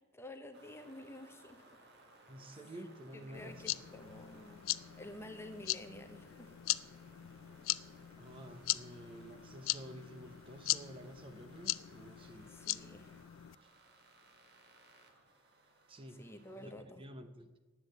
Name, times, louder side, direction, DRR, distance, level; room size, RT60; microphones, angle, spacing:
voice 1, 0.1-1.6 3.1-4.6 5.0-6.5 12.5-13.1 16.2-17.0, left 1 dB, 10° left, 7 dB, 0.9 m, -50 dB
sound 1, 0.5-16.7, right 2 dB, 55° right, 1.9 m, -62 dB
voice 2, 2.3-3.9 8.2-12.5 15.9-16.2 16.5-17.5, right 1 dB, 25° right, 7 dB, 0.8 m, -51 dB
sound 2, 3.3-13.5, left 16 dB, 75° left, 0.4 m, -40 dB
10.5 x 8.2 x 8.0 m, 1.2 s
head